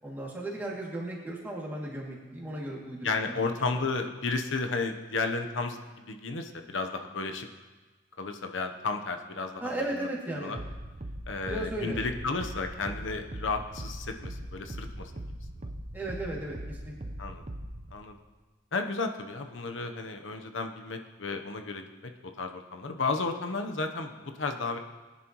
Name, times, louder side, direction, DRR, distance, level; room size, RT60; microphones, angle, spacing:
voice 1, 0.0-3.8 9.6-10.5 11.5-12.0 15.9-17.1, right 1 dB, 10° right, -4 dB, 2.5 m, -36 dB
voice 2, 3.0-7.5 8.2-9.7 10.4-10.6 11.3-15.2 17.2-17.4 17.9-18.2 18.7-22.1 22.4-24.8, left 3 dB, 85° left, 5 dB, 0.9 m, -33 dB
sound 1, 10.5-17.9, right 1 dB, 35° right, 0.6 m, -40 dB
20.5 x 10.5 x 3.1 m, 1.3 s
head